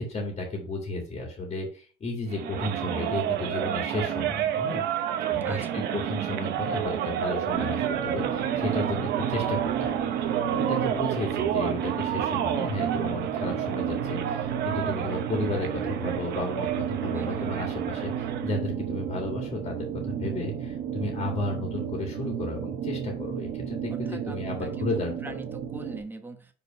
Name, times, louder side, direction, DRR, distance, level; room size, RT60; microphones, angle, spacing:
voice 1, 0.0-4.8 5.3-10.0 10.5-25.4, left 2 dB, 40° left, 2.1 m, -33 dB
sound 1, 2.3-18.5, right 10 dB, 80° right, 0.9 m, -30 dB
voice 2, 5.4-5.9 17.1-17.5 23.9-26.5, right 2 dB, 10° right, 1.1 m, -42 dB
sound 2, 7.5-26.0, right 9 dB, 60° right, 1.2 m, -32 dB
5.2 x 4.5 x 5.4 m
cardioid pair, 110°, 17 cm